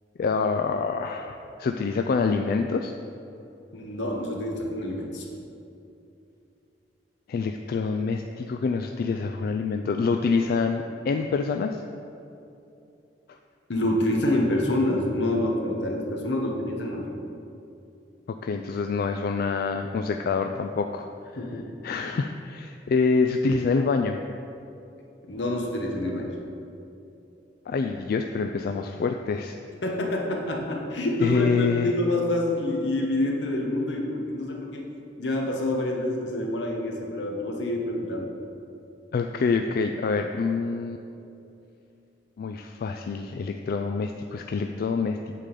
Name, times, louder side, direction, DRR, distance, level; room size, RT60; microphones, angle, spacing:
voice 1, 0.2-2.9 7.3-11.8 18.3-21.0 21.8-24.2 27.7-29.6 31.2-31.9 39.1-41.0 42.4-45.4, left 4 dB, 55° left, 5 dB, 0.3 m, -26 dB
voice 2, 3.7-5.3 13.7-17.1 21.4-21.7 23.7-23.8 25.3-26.3 29.8-34.9 35.2-38.3, left 1 dB, 80° left, 0 dB, 1.2 m, -27 dB
8.3 x 3.8 x 6.7 m, 2.7 s
head